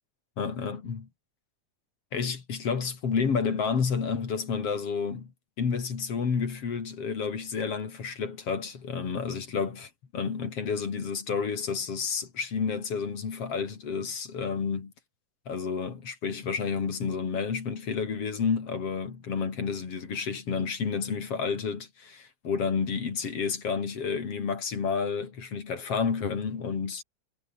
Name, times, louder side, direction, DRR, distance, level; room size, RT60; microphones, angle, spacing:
voice 1, 0.4-1.1 2.1-5.3 5.6-9.9 10.1-14.9 15.5-27.0, left 5 dB, 50° left, 3.7 m, -30 dB
omnidirectional pair, 3.5 m